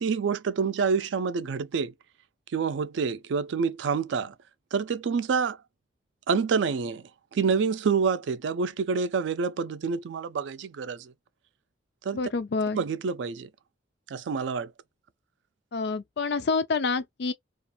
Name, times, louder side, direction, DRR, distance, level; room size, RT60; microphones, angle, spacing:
voice 1, 0.0-1.9 2.5-4.3 4.7-5.6 6.3-7.0 7.3-11.1 12.0-12.2 12.7-13.5 14.1-14.7, right 5 dB, 80° right, 0.4 m, -27 dB
voice 2, 12.1-12.8 15.7-17.3, left 4 dB, 65° left, 0.5 m, -27 dB
2.4 x 2.4 x 2.8 m
head